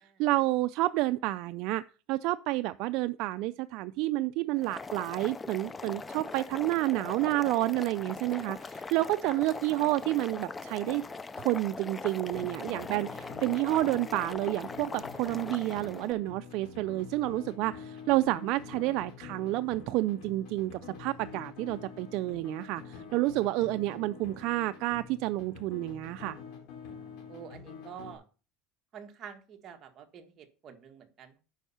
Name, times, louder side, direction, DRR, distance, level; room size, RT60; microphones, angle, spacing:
voice 1, 0.2-1.8 2.1-11.0 11.4-26.4, right 17 dB, 60° right, 0.3 m, -30 dB
Boiling, 4.6-16.1, left 4 dB, 15° left, 0.4 m, -41 dB
sound 1, 12.3-28.2, left 6 dB, 65° left, 3.9 m, -46 dB
voice 2, 27.3-28.2 28.9-31.4, right 8 dB, 35° right, 1.5 m, -47 dB
9.2 x 5.5 x 5.6 m
supercardioid pair, 140°, 0 cm